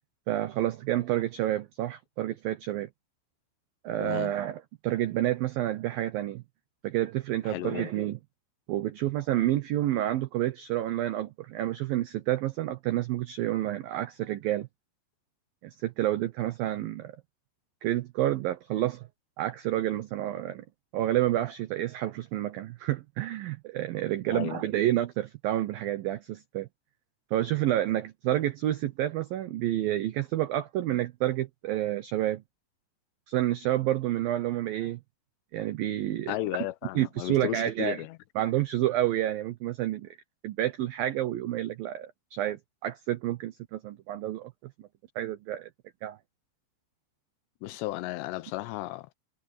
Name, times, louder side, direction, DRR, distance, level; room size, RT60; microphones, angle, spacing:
voice 1, 0.3-2.9 3.8-6.4 6.8-8.2 8.7-14.7 15.8-17.2 17.8-19.1 19.4-20.6 20.9-26.7 27.3-32.4 33.3-35.0 35.5-36.3 37.0-38.0 38.4-40.1 40.4-44.5 44.8-44.9 45.2-45.7 46.0-46.2, right 13 dB, 80° right, 2.1 m, -29 dB
voice 2, 4.0-4.3 7.4-7.9 24.3-24.6 36.3-38.2 47.6-49.1, left 16 dB, 80° left, 2.8 m, -34 dB
omnidirectional pair, 5.4 m